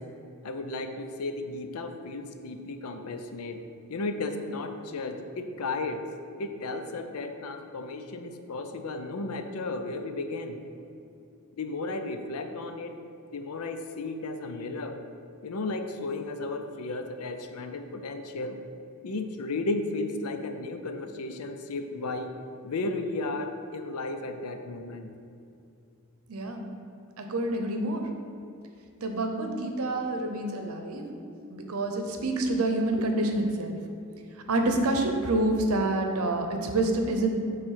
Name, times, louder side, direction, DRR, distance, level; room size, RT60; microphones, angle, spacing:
voice 1, 0.4-3.6 3.9-6.0 6.4-10.6 11.6-13.0 13.3-15.0 15.4-18.6 19.0-22.3 22.6-25.1, left 2 dB, 85° left, 7 dB, 0.5 m, -34 dB
voice 2, 26.3-26.6 27.2-28.1 29.0-31.0 31.5-33.8 34.5-37.3, right 2 dB, 75° right, 4 dB, 0.7 m, -27 dB
7.2 x 3.2 x 5.7 m, 2.6 s
head